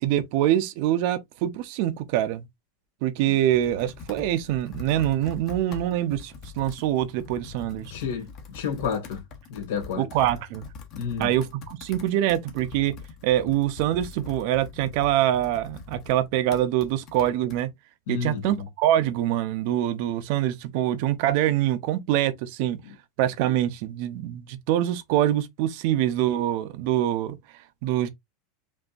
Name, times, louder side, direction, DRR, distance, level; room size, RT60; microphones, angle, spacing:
voice 1, 0.0-2.5 3.0-7.9 10.0-10.6 11.2-12.9 13.2-17.7 18.1-22.8 23.2-27.4 27.8-28.1, right 12 dB, 50° right, 0.6 m, -25 dB
Computer keyboard, 3.0-17.6, left 5 dB, 40° left, 1.1 m, -43 dB
voice 2, 7.9-8.3 8.5-9.2 9.5-10.0 10.9-11.3 18.1-18.7, left 7 dB, 80° left, 2.2 m, -30 dB
5.2 x 2.7 x 2.5 m
supercardioid pair, 160°, 0 cm